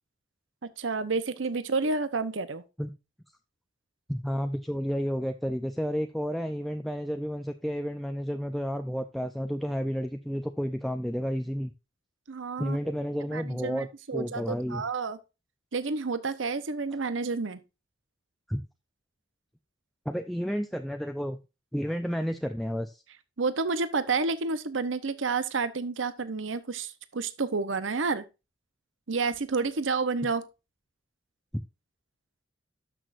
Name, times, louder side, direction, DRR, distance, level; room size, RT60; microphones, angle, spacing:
voice 1, 0.8-2.6 12.3-12.8 13.3-15.2 15.7-17.6 23.4-28.2 29.1-30.4, right 4 dB, 80° right, 0.9 m, -30 dB
voice 2, 4.1-11.7 12.6-14.8 18.5-18.6 20.1-21.4 21.7-23.0, equal, ahead, 0.5 m, -31 dB
12.5 x 6.3 x 2.6 m
head